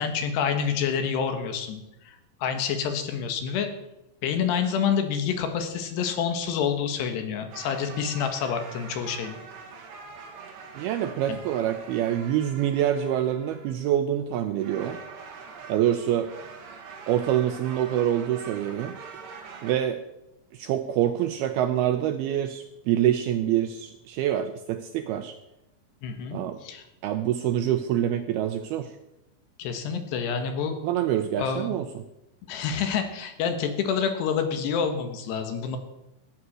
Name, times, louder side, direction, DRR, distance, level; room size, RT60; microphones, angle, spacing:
voice 1, 0.0-3.7 4.2-9.4 11.3-11.4 26.0-26.8 29.6-30.8 31.4-31.8 32.5-35.8, left 7 dB, 70° left, 6 dB, 3.4 m, -28 dB
sound 1, 7.5-14.0 14.6-19.7, right 5 dB, 70° right, 4.1 m, -44 dB
voice 2, 10.8-15.0 15.7-16.3 17.1-19.0 19.6-20.0 20.5-25.3 26.3-26.6 27.0-28.9 30.8-32.0, right 11 dB, 90° right, 8 dB, 2.2 m, -26 dB
15.0 x 9.6 x 6.4 m, 0.90 s
omnidirectional pair, 5.2 m